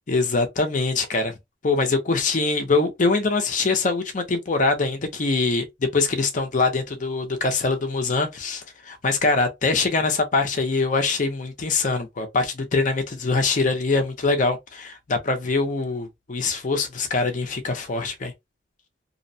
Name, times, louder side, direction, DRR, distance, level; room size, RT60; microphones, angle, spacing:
voice 1, 0.1-1.4 1.6-18.3, left 3 dB, 45° left, 0.6 m, -23 dB
2.7 x 2.1 x 2.6 m
head